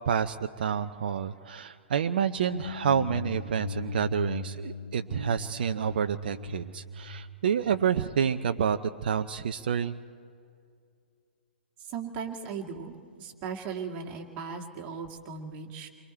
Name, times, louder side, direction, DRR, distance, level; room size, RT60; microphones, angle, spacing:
voice 1, 0.1-10.0, right 7 dB, 55° right, 9 dB, 0.6 m, -28 dB
sound 1, 2.2-8.2, left 3 dB, 75° left, 1.5 m, -39 dB
voice 2, 11.8-15.9, right 6 dB, 25° right, 2 dB, 2.3 m, -38 dB
29.0 x 23.0 x 4.4 m, 2.3 s
figure-of-eight pair, 115°, 6 cm